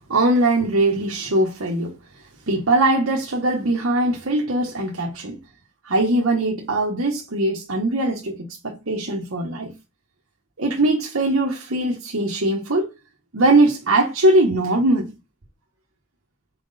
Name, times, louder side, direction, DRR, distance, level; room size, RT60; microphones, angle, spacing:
voice 1, 0.1-2.0 2.5-5.4 5.8-9.7 10.6-12.9 13.3-15.1, right 2 dB, 70° right, 1.2 m, -21 dB
5.9 x 4.4 x 4.1 m
head